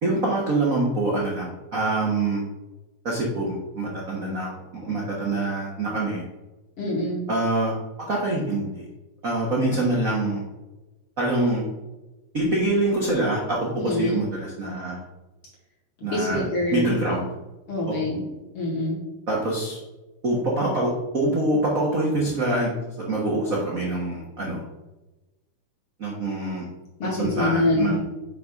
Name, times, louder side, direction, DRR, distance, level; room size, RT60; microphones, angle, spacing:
voice 1, 0.0-2.5 3.0-4.5 4.8-6.3 7.3-8.9 9.2-10.4 11.2-11.7 12.3-15.0 16.0-16.4 16.7-17.3 17.9-18.0 19.3-19.8 20.2-22.7 23.0-24.6 26.0-26.7 27.0-28.0, right 2 dB, 65° right, -4 dB, 0.8 m, -25 dB
voice 2, 6.8-7.3 13.7-14.3 16.1-16.9 17.7-18.3 18.5-19.0 27.0-28.0, left 1 dB, 45° left, -5 dB, 3.1 m, -25 dB
7.8 x 3.7 x 5.4 m, 1.1 s
omnidirectional pair, 3.7 m